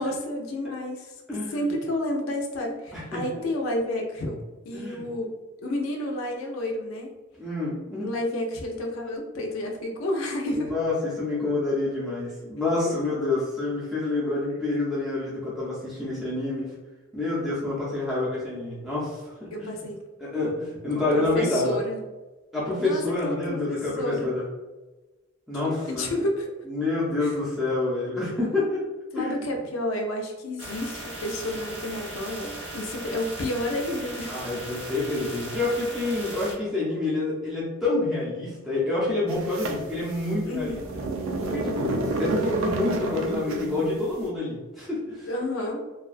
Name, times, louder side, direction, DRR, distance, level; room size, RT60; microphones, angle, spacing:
voice 1, 0.0-1.1 1.5-5.3 5.6-7.1 8.0-10.7 19.5-20.1 20.9-22.0 22.8-24.3 25.6-26.5 27.2-27.3 29.1-34.3 40.5-40.8 45.3-45.8, left 1 dB, 90° left, 1 dB, 0.5 m, -30 dB
voice 2, 1.3-1.7 2.9-3.2 4.7-5.0 7.4-8.1 10.5-16.7 17.1-19.7 20.2-21.8 22.5-24.4 25.5-26.1 26.7-28.8 29.2-29.3 34.3-40.7 41.5-45.3, left 2 dB, ahead, -9 dB, 0.5 m, -28 dB
sound 1, 30.6-36.5, right 1 dB, 65° right, 0.7 m, -38 dB
sound 2, 39.3-44.0, right 2 dB, 85° right, 0.3 m, -29 dB
2.3 x 2.2 x 2.4 m, 1.2 s
head